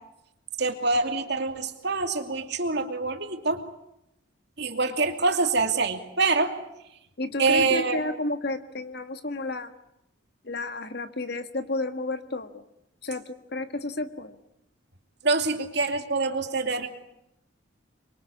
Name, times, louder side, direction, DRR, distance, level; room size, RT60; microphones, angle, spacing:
voice 1, 0.6-3.6 4.6-6.5 7.4-8.0 15.2-16.9, right 3 dB, 55° right, 5 dB, 2.7 m, -25 dB
voice 2, 7.2-9.7 10.4-12.6 13.0-14.4, left 2 dB, 50° left, 10 dB, 1.6 m, -31 dB
26.0 x 23.0 x 8.5 m, 0.83 s
head